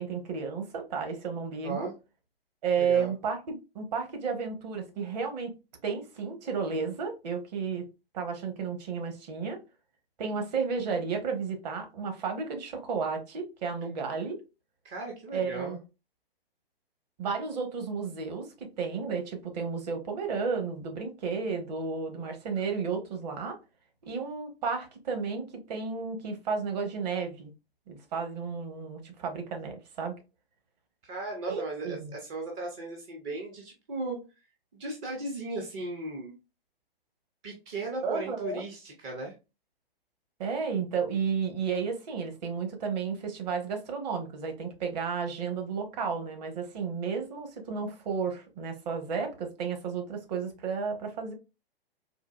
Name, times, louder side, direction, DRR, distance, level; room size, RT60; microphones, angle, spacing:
voice 1, 0.0-1.9 2.6-5.5 5.8-7.9 8.1-9.6 10.2-14.4 15.3-15.8 17.2-23.6 24.0-27.5 27.9-30.2 31.5-32.1 38.0-38.6 40.4-51.3, right 5 dB, 45° right, 0.9 m, -32 dB
voice 2, 2.8-3.1 14.8-15.8 22.6-22.7 31.0-34.2 34.7-36.3 37.4-39.3, right 2 dB, 15° right, 0.4 m, -36 dB
3.8 x 2.4 x 2.3 m
figure-of-eight pair, 125°, 30 cm